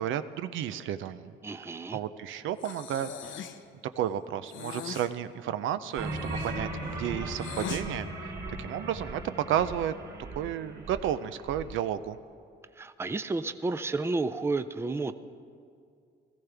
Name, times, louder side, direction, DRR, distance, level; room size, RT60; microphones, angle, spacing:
voice 1, 0.0-1.3 1.9-3.3 4.0-8.1 8.6-9.9 10.4-12.2, right 10 dB, 80° right, 12 dB, 0.5 m, -32 dB
voice 2, 1.4-2.0 12.8-15.1, right 3 dB, 10° right, 12 dB, 0.5 m, -31 dB
Breathing, 2.6-3.7 4.4-5.1 5.9-7.9, left 8 dB, 75° left, 0.7 m, -41 dB
sound 1, 6.0-11.7, right 2 dB, 60° right, 3.2 m, -38 dB
18.0 x 14.5 x 3.4 m, 2.4 s
cardioid pair, 90°, 20 cm